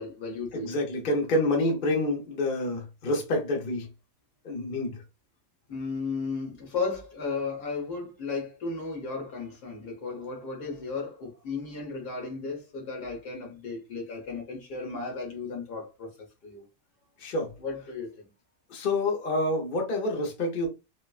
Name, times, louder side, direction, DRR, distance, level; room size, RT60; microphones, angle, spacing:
voice 1, 0.0-0.8 5.7-16.1 16.4-16.7 17.6-18.2, left 4 dB, 70° left, 1.8 m, -35 dB
voice 2, 0.5-3.9 4.4-5.0 17.2-17.5 18.7-20.7, left 1 dB, 40° left, 0.9 m, -27 dB
4.2 x 2.2 x 2.4 m
omnidirectional pair, 1.8 m